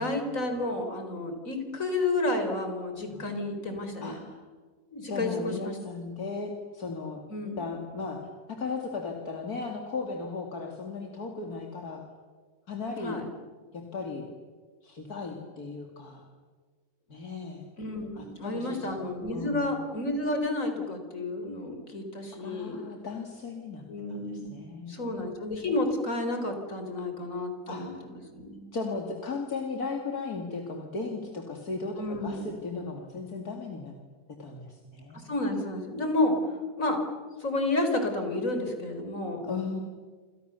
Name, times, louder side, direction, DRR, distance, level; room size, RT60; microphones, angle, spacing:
voice 1, 0.0-4.2 4.9-5.8 7.3-7.6 13.0-13.3 17.8-22.8 23.9-28.7 32.0-32.5 35.1-36.4 36.8-37.0 37.4-39.4, left 2 dB, 55° left, 5 dB, 4.6 m, -31 dB
voice 2, 3.1-3.4 4.0-4.4 5.1-7.2 7.6-12.0 12.7-13.2 13.7-14.3 14.8-16.2 17.1-17.7 18.2-18.9 19.3-19.7 22.4-23.8 24.1-25.1 27.7-28.0 28.7-33.9 34.4-35.2 39.4-39.8, left 4 dB, 70° left, 2 dB, 3.0 m, -36 dB
28.0 x 28.0 x 7.0 m, 1.5 s
omnidirectional pair, 1.6 m